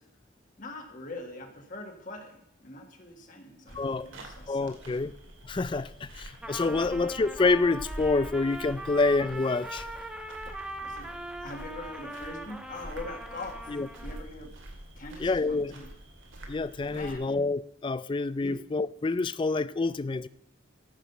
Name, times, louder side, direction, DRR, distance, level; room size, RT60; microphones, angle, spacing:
voice 1, 0.6-4.8 6.6-7.1 10.8-13.7 14.0-14.5 15.0-15.9 16.9-17.3 18.4-18.6, left 2 dB, 40° left, 1.6 m, -43 dB
voice 2, 3.7-4.1 4.5-5.1 5.4-9.9 13.7-13.9 15.2-15.8 16.5-20.3, left 3 dB, 25° left, 0.3 m, -27 dB
sound 1, 3.7-17.2, right 1 dB, 75° right, 2.4 m, -46 dB
Trumpet, 6.3-14.3, right 1 dB, 5° right, 1.0 m, -41 dB
13.5 x 6.3 x 6.7 m
head